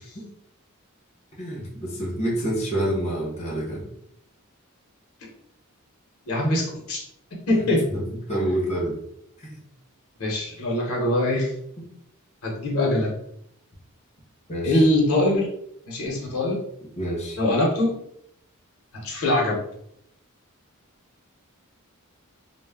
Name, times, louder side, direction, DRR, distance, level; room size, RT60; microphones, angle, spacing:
voice 1, 1.4-3.8 7.9-9.0 9.4-9.6 11.8-11.9 14.5-14.8 17.0-17.4, right 1 dB, 30° left, -4 dB, 0.7 m, -28 dB
voice 2, 6.3-7.0 7.5-7.9 10.2-11.5 12.4-13.1 14.6-15.5 15.9-16.6 17.4-18.0 18.9-19.6, left 1 dB, 70° left, -2 dB, 0.8 m, -22 dB
2.1 x 2.0 x 3.4 m, 0.74 s
head